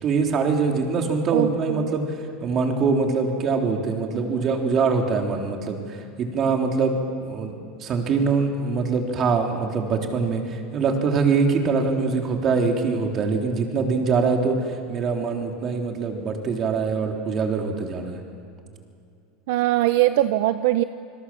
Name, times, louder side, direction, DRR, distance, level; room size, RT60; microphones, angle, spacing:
voice 1, 0.0-18.2, right 4 dB, 35° right, 2 dB, 3.6 m, -23 dB
voice 2, 1.3-2.0 19.5-20.8, right 15 dB, 70° right, 12 dB, 0.7 m, -21 dB
27.5 x 21.5 x 7.5 m, 2.5 s
supercardioid pair, 130°, 0 cm